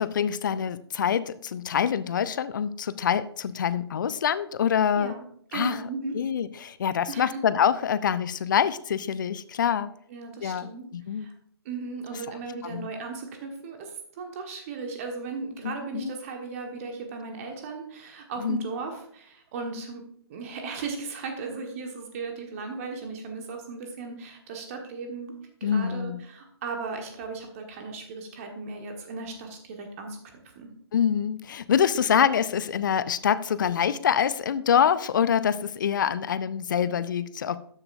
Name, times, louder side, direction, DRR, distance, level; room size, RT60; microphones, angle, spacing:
voice 1, 0.0-5.1 5.5-5.8 6.1-9.9 10.4-11.3 12.6-12.9 15.6-16.1 18.4-18.6 25.6-26.2 30.9-37.6, left 8 dB, 45° left, 15 dB, 0.5 m, -25 dB
voice 2, 5.5-6.2 7.1-7.4 10.1-11.3 11.6-25.3 25.6-30.2 30.4-30.7, right 4 dB, 30° right, 3 dB, 1.5 m, -36 dB
13.0 x 9.7 x 2.6 m, 0.64 s
figure-of-eight pair, 135°, 14 cm